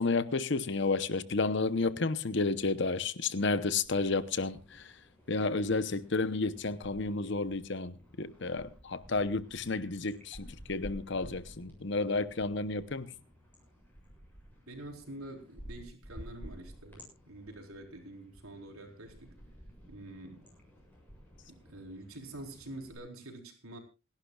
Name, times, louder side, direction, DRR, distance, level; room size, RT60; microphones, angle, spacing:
voice 1, 0.0-4.9 5.3-13.1, left 3 dB, 55° left, 0.9 m, -31 dB
sound 1, 3.8-7.0 7.3-23.0, equal, 10° left, 7.4 m, -53 dB
voice 2, 14.7-19.4 19.9-20.5 21.4-23.8, right 1 dB, 85° right, 4.2 m, -46 dB
28.0 x 11.5 x 2.4 m
head